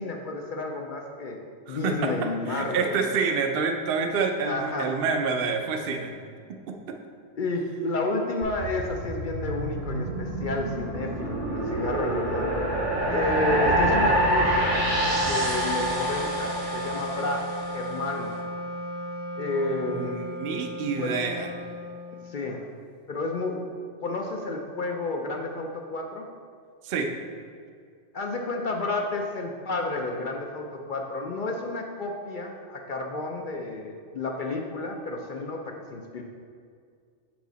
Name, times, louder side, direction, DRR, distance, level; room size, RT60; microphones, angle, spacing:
voice 1, 0.0-3.0 4.4-5.0 7.4-12.7 13.1-14.9 15.2-17.4 17.7-18.3 19.4-20.2 21.0-21.1 22.3-22.7 23.1-23.7 24.0-26.3 28.1-36.2, left 2 dB, 55° left, 2 dB, 0.6 m, -31 dB
voice 2, 1.7-6.1 6.7-6.9 19.9-21.5 26.8-27.1, right 5 dB, 60° right, 4 dB, 0.7 m, -28 dB
sound 1, 8.4-17.8, right 1 dB, 75° right, 1.7 m, -27 dB
Wind instrument woodwind instrument, 13.0-22.6, left 1 dB, 85° left, 1.3 m, -35 dB
7.1 x 4.8 x 4.0 m, 2.1 s
omnidirectional pair, 1.3 m